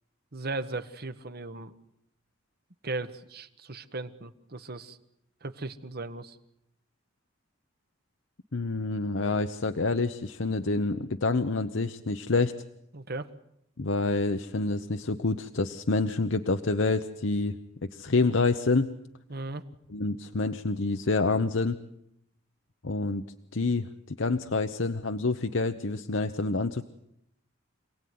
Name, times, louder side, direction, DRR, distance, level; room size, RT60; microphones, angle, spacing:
voice 1, 0.3-1.8 2.8-5.0 5.4-6.4 12.9-13.3 19.3-19.6, right 2 dB, 50° right, 10 dB, 1.4 m, -37 dB
voice 2, 8.5-12.5 13.8-17.6 17.8-18.9 19.9-21.8 22.8-23.2 23.5-26.8, left 3 dB, 70° left, 8 dB, 0.9 m, -27 dB
27.5 x 18.5 x 9.5 m, 0.80 s
head